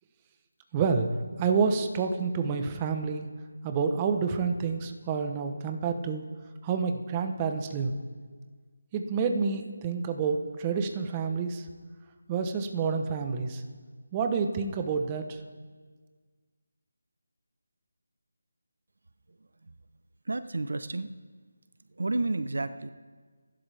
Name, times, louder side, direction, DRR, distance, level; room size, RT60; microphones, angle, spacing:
voice 1, 0.7-1.1 1.4-3.3 3.6-6.3 6.6-7.9 8.9-11.7 12.3-13.6 14.1-15.4, right 5 dB, 15° right, 6 dB, 0.9 m, -28 dB
voice 2, 20.3-21.1 22.0-22.9, right 2 dB, 70° right, 13 dB, 0.8 m, -30 dB
26.0 x 11.5 x 3.4 m, 1.5 s
figure-of-eight pair, 170°, 0 cm